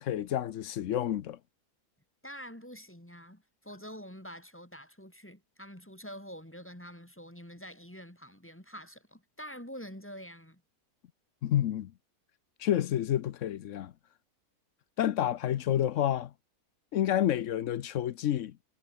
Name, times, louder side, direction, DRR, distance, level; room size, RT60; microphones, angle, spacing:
voice 1, 0.0-1.4 11.4-11.9 12.6-13.9 15.0-16.3 16.9-18.6, left 11 dB, 60° left, 1.0 m, -29 dB
voice 2, 2.2-10.6, equal, 10° left, 2.5 m, -46 dB
omnidirectional pair, 1.6 m